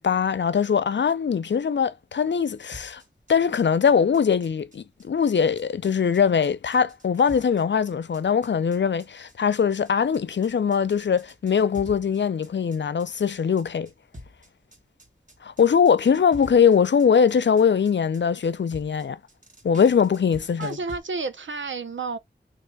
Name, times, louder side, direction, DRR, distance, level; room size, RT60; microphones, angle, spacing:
voice 1, 0.0-3.0 3.3-13.9 15.4-19.2 19.6-20.8, left 7 dB, 70° left, 0.5 m, -21 dB
sound 1, 2.7-21.0, equal, 40° right, 1.4 m, -47 dB
voice 2, 20.6-22.2, right 4 dB, 90° right, 0.7 m, -31 dB
3.6 x 2.9 x 4.6 m
wide cardioid pair, 80°, 19 cm